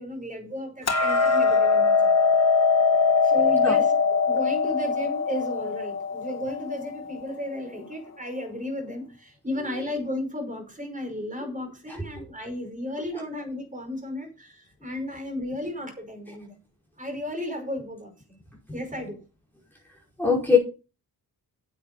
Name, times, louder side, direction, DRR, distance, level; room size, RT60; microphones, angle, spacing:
voice 1, 0.0-2.1 3.2-3.9 4.2-16.6 17.0-18.4 18.7-19.2, left 1 dB, 20° right, 4 dB, 5.3 m, -34 dB
Hammer, 0.9-7.1, left 4 dB, 45° left, 1.5 m, -22 dB
voice 2, 11.9-12.2 20.2-20.6, left 6 dB, 5° left, -3 dB, 4.9 m, -22 dB
9.7 x 7.8 x 5.4 m, 0.32 s
wide cardioid pair, 115°, 37 cm